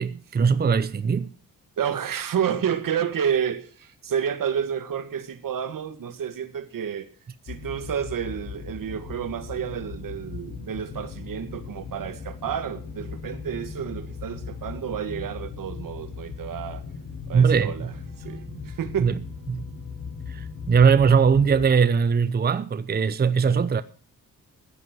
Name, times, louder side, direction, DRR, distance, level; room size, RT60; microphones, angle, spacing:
voice 1, 0.0-1.3 17.3-17.9 18.5-18.6 19.0-19.2 19.5-19.7 20.3-23.8, right 6 dB, 30° right, 0.7 m, -20 dB
voice 2, 1.8-7.1 7.4-16.8 17.3-17.9 18.2-19.1, right 8 dB, 70° right, 1.9 m, -30 dB
sound 1, 7.5-21.7, left 5 dB, 75° left, 7.1 m, -38 dB
15.0 x 10.5 x 6.1 m
wide cardioid pair, 130°, 34 cm